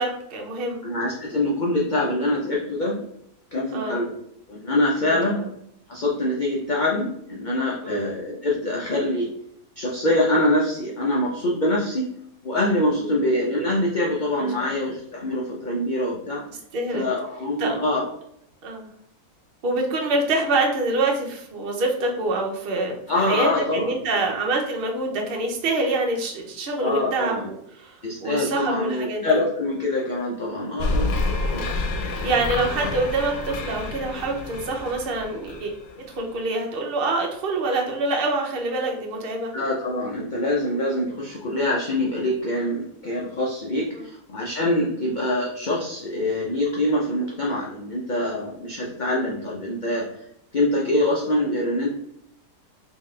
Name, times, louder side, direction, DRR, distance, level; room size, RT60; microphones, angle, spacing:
voice 1, 0.0-0.8 3.7-4.0 5.1-5.4 7.8-8.1 12.9-13.2 14.4-14.7 16.7-17.1 17.6-17.8 18.6-18.9 19.6-29.2 31.6-31.7 32.2-35.7 36.1-39.5, right 2 dB, 50° right, 0 dB, 0.8 m, -26 dB
voice 2, 0.8-3.0 3.5-4.1 4.5-5.4 5.9-9.3 9.8-12.1 12.4-16.4 16.9-18.1 23.1-24.3 26.8-27.5 28.0-31.1 31.5-31.7 39.5-50.1 50.5-51.9, left 1 dB, 60° left, -3 dB, 0.5 m, -24 dB
sound 1, 30.8-36.2, left 2 dB, 90° left, 1.2 m, -28 dB
3.6 x 2.8 x 3.2 m, 0.73 s
omnidirectional pair, 1.6 m